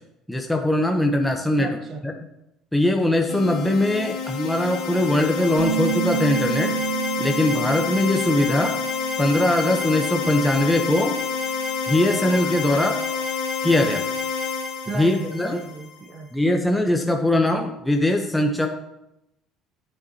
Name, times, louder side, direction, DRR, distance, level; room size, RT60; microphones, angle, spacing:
voice 1, 0.3-1.8 2.0-2.1 2.7-6.7 7.2-8.8 9.2-11.2 11.9-13.0 13.6-14.1 14.9-15.6 16.3-18.7, left 1 dB, 5° left, 2 dB, 0.9 m, -21 dB
voice 2, 1.6-2.0 4.1-4.5 14.9-16.3, right 3 dB, 40° right, 5 dB, 1.0 m, -34 dB
sound 1, 3.3-16.0, left 5 dB, 65° left, 1.4 m, -28 dB
Bass guitar, 5.6-9.9 10.2-11.8, right 15 dB, 80° right, 0.4 m, -31 dB
10.5 x 6.8 x 2.9 m, 0.87 s
hypercardioid pair, 60°, 0 cm